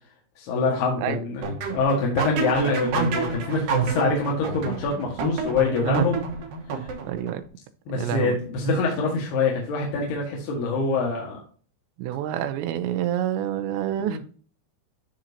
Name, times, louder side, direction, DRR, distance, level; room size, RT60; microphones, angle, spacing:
voice 1, 0.4-1.4 1.7-6.2 6.8-6.9 7.9-11.4 14.0-14.2, left 3 dB, 65° left, 3.5 m, -25 dB
sound 1, 1.4-7.3, right 4 dB, 65° right, 2.4 m, -28 dB
voice 2, 5.9-6.2 7.0-7.4 7.9-8.4 12.0-14.2, right 11 dB, 85° right, 2.9 m, -27 dB
12.5 x 4.4 x 2.8 m
omnidirectional pair, 5.4 m